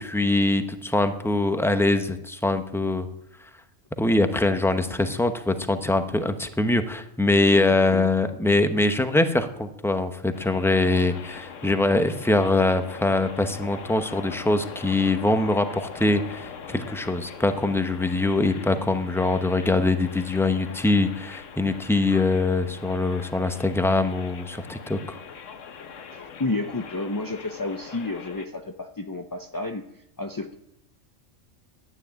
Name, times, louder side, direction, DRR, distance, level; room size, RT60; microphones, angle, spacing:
voice 1, 0.0-3.1 4.0-25.2, left 2 dB, ahead, 8 dB, 0.7 m, -23 dB
voice 2, 7.5-8.1 26.1-29.9 30.2-30.6, left 2 dB, 30° left, 5 dB, 0.4 m, -31 dB
sound 1, 10.3-28.5, left 6 dB, 75° left, 1.3 m, -42 dB
12.5 x 9.5 x 8.8 m, 0.84 s
omnidirectional pair, 1.3 m